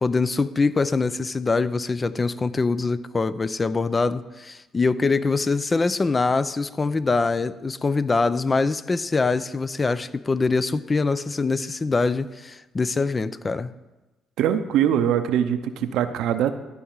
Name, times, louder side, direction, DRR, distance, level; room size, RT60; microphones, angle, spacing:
voice 1, 0.0-13.7, left 3 dB, 30° left, 0.5 m, -23 dB
voice 2, 14.4-16.5, right 9 dB, 75° right, 0.7 m, -22 dB
13.5 x 4.8 x 7.3 m
supercardioid pair, 60°, 0 cm